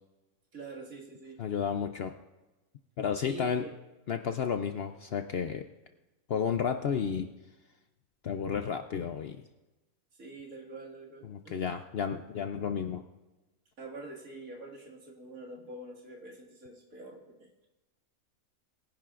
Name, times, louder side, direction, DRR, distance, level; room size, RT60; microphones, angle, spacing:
voice 1, 0.5-1.4 3.2-3.7 10.1-11.8 13.8-17.7, right 1 dB, 70° right, -3 dB, 2.6 m, -46 dB
voice 2, 1.4-2.1 3.0-3.6 4.1-5.6 6.3-7.3 8.2-9.4 11.3-13.0, left 7 dB, 60° left, 7 dB, 0.7 m, -32 dB
22.0 x 10.5 x 2.5 m, 1.1 s
omnidirectional pair, 1.5 m